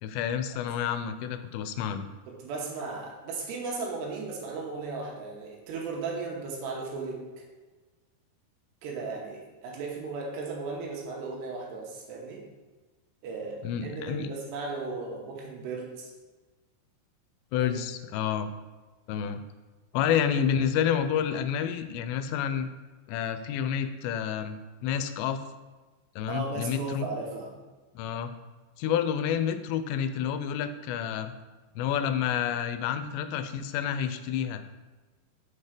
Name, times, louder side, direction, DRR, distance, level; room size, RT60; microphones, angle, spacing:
voice 1, 0.0-2.0 13.6-14.3 17.5-18.5 19.1-19.4 19.9-22.7 23.1-25.4 26.2-27.1 28.0-28.3 28.8-31.3 31.8-34.8, left 8 dB, 90° left, 9 dB, 2.7 m, -29 dB
voice 2, 2.3-7.3 8.8-12.4 13.2-16.1 26.3-27.5, right 4 dB, 80° right, -1 dB, 3.1 m, -36 dB
6.6 x 4.3 x 5.0 m, 1.2 s
omnidirectional pair, 4.9 m